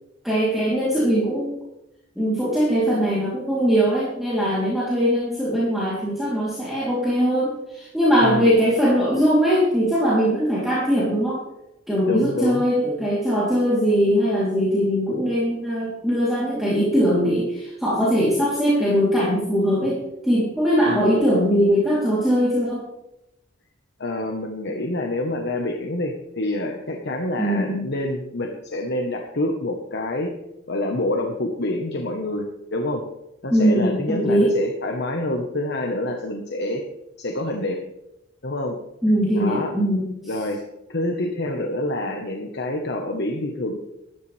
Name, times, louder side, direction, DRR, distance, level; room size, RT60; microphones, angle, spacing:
voice 1, 0.2-1.6 2.1-11.4 11.9-20.0 20.2-22.8 27.4-27.9 33.5-34.5 39.0-40.1, equal, ahead, -8 dB, 3.3 m, -21 dB
voice 2, 8.2-8.6 12.1-12.7 20.8-21.1 24.0-30.3 30.7-33.0 33.4-36.8 37.2-37.8 38.4-38.8 39.0-39.7 40.3-40.6 40.9-43.8, left 1 dB, 60° left, 2 dB, 1.3 m, -27 dB
12.5 x 12.5 x 3.4 m, 0.88 s
head